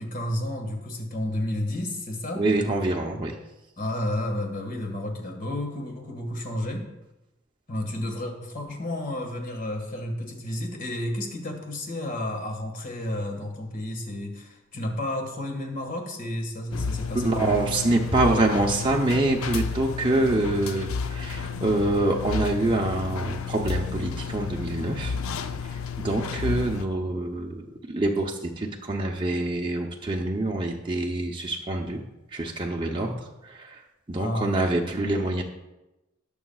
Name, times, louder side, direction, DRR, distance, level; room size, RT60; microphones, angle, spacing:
voice 1, 0.0-2.5 3.8-6.9 7.7-17.5 34.2-34.5, left 1 dB, 40° left, 3 dB, 1.8 m, -31 dB
voice 2, 2.4-3.3 17.1-25.1 25.6-32.0 32.3-33.1 33.4-33.8 34.1-35.4, right 2 dB, 25° right, -1 dB, 0.7 m, -26 dB
sound 1, 16.7-26.9, left 5 dB, 90° left, 0.6 m, -32 dB
17.5 x 7.0 x 2.4 m, 0.97 s
head